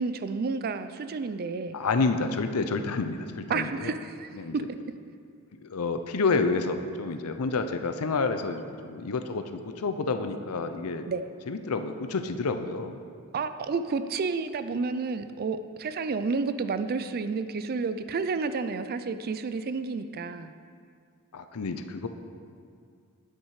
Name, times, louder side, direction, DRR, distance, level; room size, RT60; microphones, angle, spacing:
voice 1, 0.0-1.8 3.5-4.6 11.1-11.2 13.3-20.5, right 4 dB, 45° right, 11 dB, 0.4 m, -30 dB
voice 2, 1.7-4.0 4.3-4.5 5.6-11.1 11.5-13.0 21.3-22.1, left 4 dB, 75° left, 8 dB, 0.6 m, -29 dB
9.4 x 7.2 x 4.8 m, 2.2 s
head